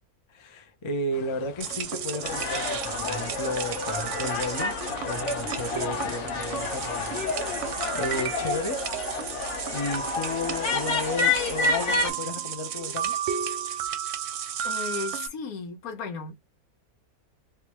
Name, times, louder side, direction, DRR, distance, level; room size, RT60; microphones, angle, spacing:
voice 1, 0.3-4.8 5.0-8.8 9.7-13.2, left 2 dB, 35° left, 0.4 m, -33 dB
sound 1, 1.1-7.9, left 7 dB, 90° left, 1.2 m, -45 dB
sound 2, 1.6-15.3, right 8 dB, 65° right, 0.8 m, -33 dB
sound 3, 2.2-12.1, left 3 dB, 55° left, 1.1 m, -29 dB
voice 2, 14.6-16.3, left 4 dB, 75° left, 1.3 m, -35 dB
3.4 x 2.6 x 3.0 m
omnidirectional pair, 1.6 m